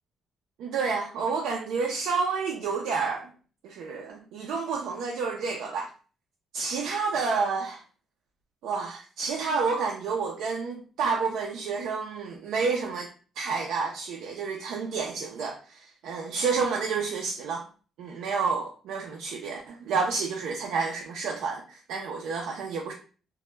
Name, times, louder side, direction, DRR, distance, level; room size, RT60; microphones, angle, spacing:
voice 1, 0.6-3.3 3.6-5.9 6.5-7.8 8.6-13.1 13.4-17.7 18.0-22.9, right 5 dB, 85° right, 0 dB, 0.4 m, -29 dB
2.1 x 2.1 x 3.1 m, 0.37 s
cardioid pair, 90°, 0 cm